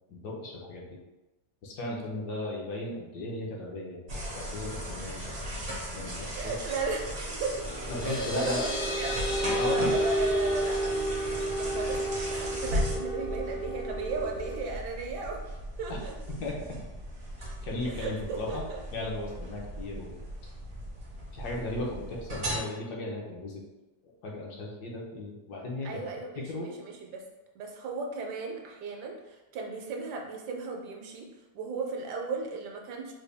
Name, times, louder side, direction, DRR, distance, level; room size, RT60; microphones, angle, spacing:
voice 1, 0.1-0.8 1.6-4.0 4.3-5.3 5.9-6.5 7.9-8.6 9.5-9.9 15.9-16.0 16.3-16.6 17.4-18.6 18.9-20.2 21.3-23.6 24.2-26.0 26.4-26.7, left 2 dB, 75° left, -2 dB, 1.3 m, -36 dB
sound 1, 4.1-22.6, equal, 45° right, 0.5 m, -37 dB
voice 2, 6.3-7.7 8.0-10.9 11.5-15.4 15.8-16.1 17.9-18.8 25.8-27.2 27.5-31.3 31.5-33.1, right 4 dB, 75° right, 1 dB, 1.1 m, -36 dB
sound 2, 7.4-14.6, right 1 dB, 55° left, 0.6 m, -31 dB
3.9 x 2.2 x 3.3 m, 1.1 s
omnidirectional pair, 1.8 m